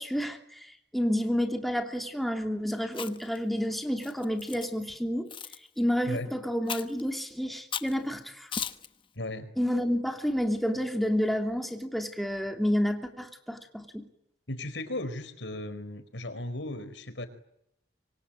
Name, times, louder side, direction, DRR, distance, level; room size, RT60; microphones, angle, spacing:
voice 1, 0.0-5.3 5.8-8.5 9.6-14.1, equal, ahead, 4 dB, 2.9 m, -30 dB
Chewing mastication, 2.9-3.4 4.0-4.7 5.3-5.6 6.7-7.0 7.7-8.0 8.5-8.9, left 7 dB, 30° left, 1.1 m, -36 dB
voice 2, 9.2-9.5 14.5-17.3, left 1 dB, 80° left, 12 dB, 4.4 m, -36 dB
26.0 x 25.0 x 9.2 m, 0.77 s
head